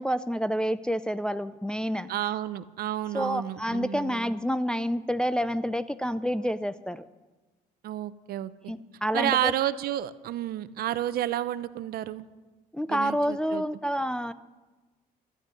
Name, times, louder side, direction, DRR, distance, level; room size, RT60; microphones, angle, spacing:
voice 1, 0.0-2.1 3.1-7.0 8.7-9.5 12.7-14.3, equal, 5° left, 12 dB, 0.4 m, -28 dB
voice 2, 2.1-4.2 7.8-8.7 9.1-12.3 12.9-13.6, right 12 dB, 65° right, 15 dB, 0.6 m, -30 dB
12.5 x 6.5 x 9.8 m, 1.2 s
cardioid pair, 110°, 17 cm